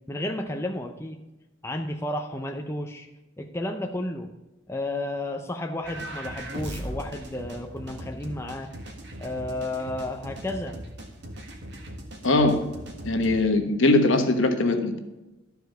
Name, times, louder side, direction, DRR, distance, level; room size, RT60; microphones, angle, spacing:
voice 1, 0.1-1.2 1.6-3.1 3.4-4.3 4.7-8.7 9.2-10.8, left 1 dB, 15° left, 4 dB, 0.6 m, -32 dB
sound 1, 5.8-13.5, equal, 55° right, 1.7 m, -39 dB
voice 2, 12.2-12.7 13.0-15.0, left 2 dB, 65° left, 5 dB, 1.3 m, -21 dB
12.5 x 4.7 x 6.6 m, 1.0 s
head